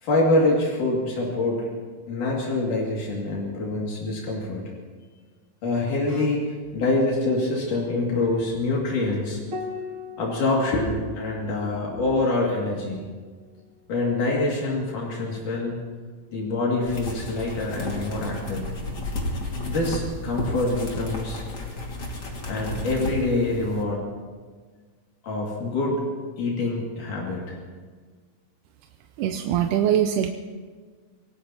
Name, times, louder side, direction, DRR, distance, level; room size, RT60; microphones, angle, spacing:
voice 1, 0.0-1.7 2.1-4.6 5.6-9.8 10.2-13.0 13.9-15.8 16.3-18.7 19.7-21.4 22.5-24.0 25.2-26.0 26.4-27.6, left 2 dB, 80° left, -3 dB, 4.0 m, -25 dB
Piano, 9.5-14.4 16.0-16.8, left 4 dB, 35° right, 1.5 m, -42 dB
sound 1, 16.9-23.8, left 1 dB, 35° left, 2.5 m, -32 dB
voice 2, 29.2-30.3, right 10 dB, 90° right, 5 dB, 2.2 m, -22 dB
27.0 x 18.0 x 2.9 m, 1.5 s
omnidirectional pair, 3.6 m